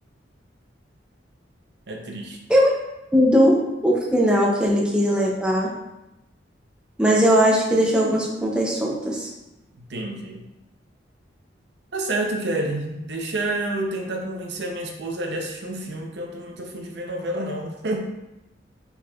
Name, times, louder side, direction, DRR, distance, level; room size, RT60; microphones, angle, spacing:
voice 1, 1.9-2.4 9.9-10.4 11.9-18.0, right 1 dB, 65° right, 1 dB, 0.6 m, -29 dB
voice 2, 3.1-5.7 7.0-9.3, equal, 5° right, -3 dB, 0.4 m, -19 dB
4.5 x 4.0 x 2.3 m, 0.94 s
head